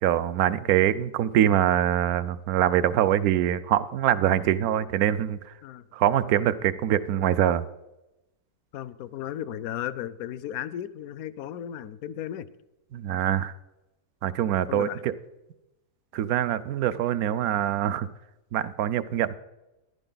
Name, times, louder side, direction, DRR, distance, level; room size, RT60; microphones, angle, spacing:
voice 1, 0.0-5.5 5.9-7.7 12.9-13.5 14.2-15.1 16.1-18.1 18.5-19.3, right 11 dB, 70° right, 15 dB, 1.0 m, -24 dB
voice 2, 8.7-12.5 14.7-15.0, left 11 dB, 70° left, 16 dB, 0.9 m, -35 dB
14.5 x 11.0 x 3.9 m, 0.96 s
omnidirectional pair, 1.7 m